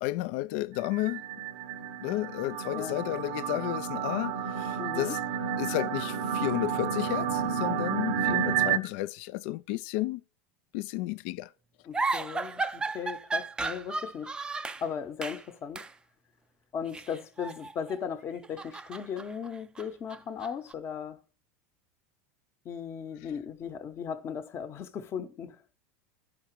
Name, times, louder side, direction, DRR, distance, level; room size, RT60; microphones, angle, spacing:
voice 1, 0.0-1.2 2.0-5.2 5.6-10.2 10.7-11.5, left 17 dB, 65° left, 0.4 m, -32 dB
sound 1, 0.8-8.8, right 8 dB, 85° right, 0.8 m, -31 dB
voice 2, 4.8-5.2 11.9-14.4 14.8-15.8 16.7-21.2 22.6-25.6, left 7 dB, 35° left, 0.9 m, -37 dB
sound 2, 11.9-14.9 15.2-15.5 15.7-15.9 16.9-18.0 18.3-20.7, right 3 dB, 10° right, 0.4 m, -34 dB
10.5 x 4.9 x 4.5 m
supercardioid pair, 115°, 7 cm